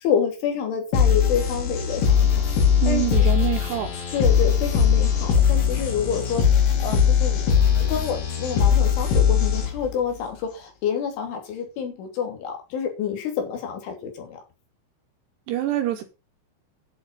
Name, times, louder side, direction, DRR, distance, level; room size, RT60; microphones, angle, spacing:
voice 1, 0.0-2.2 2.9-3.3 4.1-6.5 6.8-7.4 7.8-14.4, left 7 dB, 75° left, 5.3 m, -28 dB
sound 1, 0.9-9.9, left 7 dB, 90° left, 6.3 m, -20 dB
voice 2, 2.8-3.9 15.5-16.0, right 13 dB, 70° right, 3.0 m, -25 dB
10.5 x 8.3 x 5.4 m
omnidirectional pair, 5.6 m